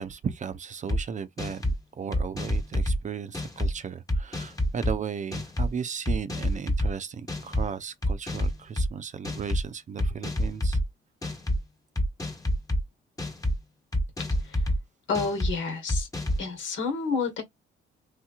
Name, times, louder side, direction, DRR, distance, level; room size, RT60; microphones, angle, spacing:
voice 1, 0.0-10.8, right 6 dB, 40° right, 0.5 m, -35 dB
sound 1, 0.9-1.0 1.4-1.8 2.1-3.0 3.3-3.7 4.1-4.9 5.3-5.7 6.0-6.9 7.3-7.6 8.0-8.9 9.2-9.6 10.0-10.8 11.2-11.6 11.9-12.8 13.2-13.5 13.9-14.8 15.1-15.5 15.9-16.4, equal, 15° left, 1.2 m, -27 dB
voice 2, 15.1-16.1 16.4-17.4, left 4 dB, 75° left, 1.4 m, -29 dB
3.3 x 2.9 x 2.3 m
cardioid pair, 90°, 20 cm